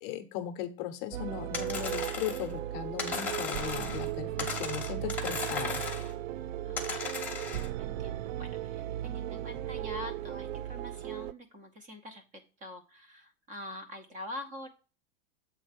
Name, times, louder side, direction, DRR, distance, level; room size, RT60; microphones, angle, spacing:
voice 1, 0.0-5.8, left 10 dB, 40° left, 9 dB, 0.7 m, -38 dB
sound 1, 1.1-11.3, right 12 dB, 90° right, 0.5 m, -36 dB
sound 2, 1.5-2.5 3.0-4.1 4.4-6.1 6.8-7.7, left 5 dB, 5° left, 1.0 m, -36 dB
voice 2, 7.5-12.2 12.6-14.7, left 1 dB, 20° right, 7 dB, 0.7 m, -45 dB
7.7 x 3.3 x 5.0 m, 0.35 s
supercardioid pair, 160°, 38 cm